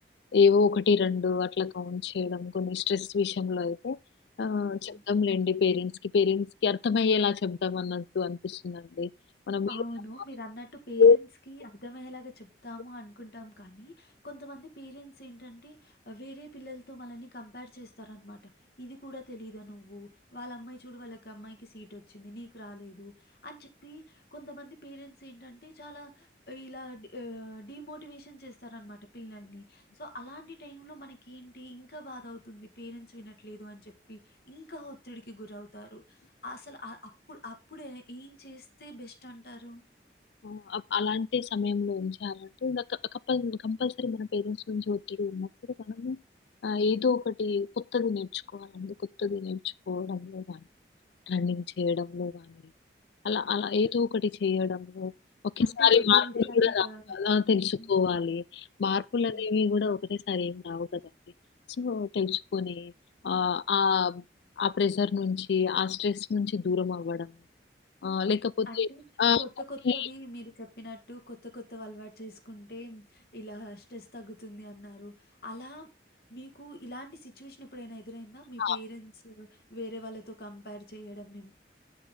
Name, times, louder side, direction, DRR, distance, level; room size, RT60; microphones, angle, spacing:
voice 1, 0.3-4.0 4.4-9.1 9.5-9.7 11.0-11.2 40.4-43.0 43.3-45.5 45.9-46.2 46.6-49.6 49.9-50.6 51.3-52.6 53.2-55.1 55.4-61.0 61.8-62.9 63.2-64.2 64.6-67.3 68.0-68.9 69.2-69.4 69.8-70.1 78.6-78.8, left 5 dB, 75° left, 0.4 m, -27 dB
voice 2, 9.7-39.8 55.6-57.0 57.8-57.9 59.3-59.5 68.7-69.0 69.4-75.9 76.3-81.5, left 1 dB, 60° left, 2.0 m, -44 dB
8.1 x 7.6 x 3.8 m
head